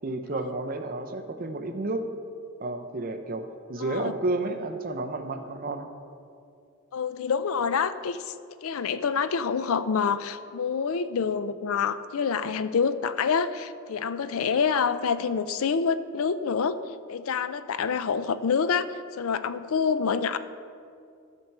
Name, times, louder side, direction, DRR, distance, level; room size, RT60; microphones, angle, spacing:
voice 1, 0.0-2.1 2.6-5.9, right 2 dB, 40° right, 6 dB, 0.7 m, -31 dB
voice 2, 3.8-4.1 6.9-8.3 8.6-16.8 17.1-18.9 19.1-20.4, left 6 dB, 65° left, 13 dB, 0.4 m, -27 dB
13.5 x 4.6 x 6.6 m, 2.4 s
head